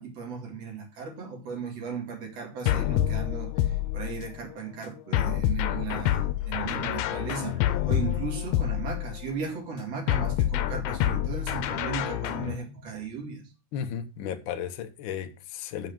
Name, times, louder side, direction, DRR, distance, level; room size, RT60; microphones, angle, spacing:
voice 1, 0.0-13.5, right 5 dB, 60° right, 3.2 m, -36 dB
sound 1, 2.7-4.4 5.1-9.3 10.1-12.6, left 12 dB, 85° left, 2.1 m, -27 dB
voice 2, 13.7-15.9, left 8 dB, 70° left, 1.1 m, -34 dB
6.2 x 6.0 x 7.0 m
omnidirectional pair, 3.3 m